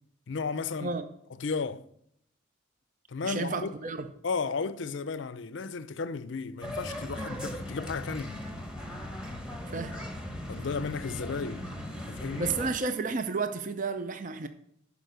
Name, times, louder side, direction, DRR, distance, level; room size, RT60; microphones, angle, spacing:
voice 1, 0.3-0.9 1.4-1.9 3.1-3.7 4.2-8.4 10.5-11.7 12.1-12.5, left 4 dB, 65° left, 0.5 m, -34 dB
voice 2, 3.2-4.1 9.7-10.0 12.4-14.5, right 4 dB, 40° right, 0.5 m, -32 dB
sound 1, 6.6-12.7, left 1 dB, 5° right, 1.1 m, -38 dB
11.5 x 5.2 x 6.5 m
head